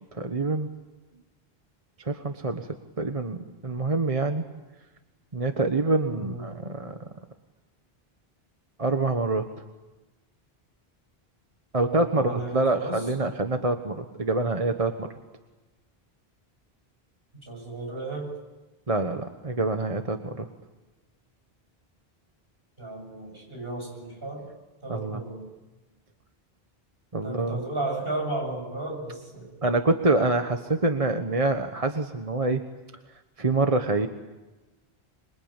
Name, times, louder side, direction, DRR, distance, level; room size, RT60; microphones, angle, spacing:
voice 1, 0.1-0.7 2.0-2.7 3.0-4.4 5.3-7.0 8.8-9.5 11.7-15.1 18.9-20.5 24.9-25.2 27.1-27.6 29.6-32.6 33.4-34.1, right 2 dB, 35° right, 6 dB, 1.3 m, -26 dB
voice 2, 6.1-6.5 11.8-13.1 17.4-18.3 22.8-24.5 24.8-25.5 27.2-29.5, right 2 dB, 65° right, 1 dB, 8.1 m, -34 dB
26.5 x 23.5 x 9.0 m, 1.1 s
omnidirectional pair, 1.1 m